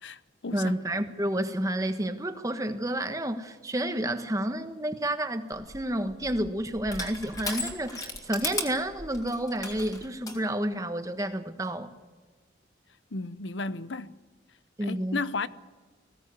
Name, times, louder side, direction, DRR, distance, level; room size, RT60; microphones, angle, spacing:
voice 1, 0.0-0.7 13.1-14.1 14.8-15.5, left 3 dB, 85° left, 0.8 m, -34 dB
voice 2, 0.5-11.9 14.8-15.5, right 1 dB, 20° right, 1.3 m, -30 dB
Crushing, 5.5-10.4, left 3 dB, 20° left, 2.8 m, -37 dB
21.0 x 16.5 x 9.5 m
head